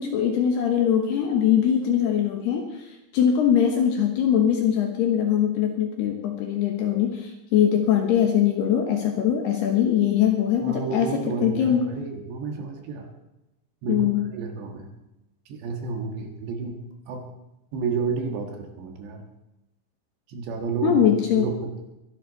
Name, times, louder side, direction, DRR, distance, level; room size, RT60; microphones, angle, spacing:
voice 1, 0.0-11.9 13.9-14.3 20.8-21.5, left 9 dB, 70° left, 3 dB, 2.7 m, -22 dB
voice 2, 10.6-13.1 13.8-14.9 15.5-17.3 17.7-19.3 20.3-21.1 21.3-21.9, right 5 dB, 65° right, 3 dB, 3.5 m, -31 dB
22.5 x 11.5 x 4.1 m, 0.95 s
omnidirectional pair, 5.8 m